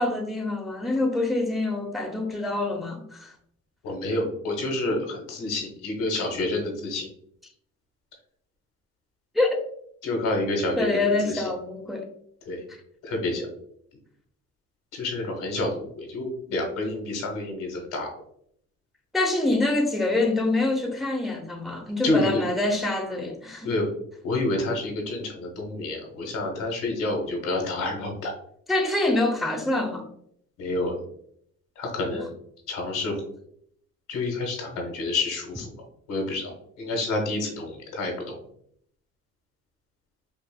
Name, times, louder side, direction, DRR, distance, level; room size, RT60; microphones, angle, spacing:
voice 1, 0.0-3.3 9.3-9.7 10.8-12.1 12.7-12.8 19.1-23.7 28.7-30.1 32.1-32.2, left 2 dB, ahead, 2 dB, 0.6 m, -25 dB
voice 2, 3.8-7.1 10.0-11.4 12.4-12.6 13.0-13.5 14.9-18.1 22.0-22.4 23.6-23.9 24.2-28.3 30.6-31.0 31.8-32.3 32.7-33.2 34.1-35.7 36.1-36.5 36.8-38.4, left 2 dB, 90° left, 1 dB, 1.5 m, -28 dB
5.4 x 2.7 x 2.2 m, 0.68 s
cardioid pair, 90°, 30 cm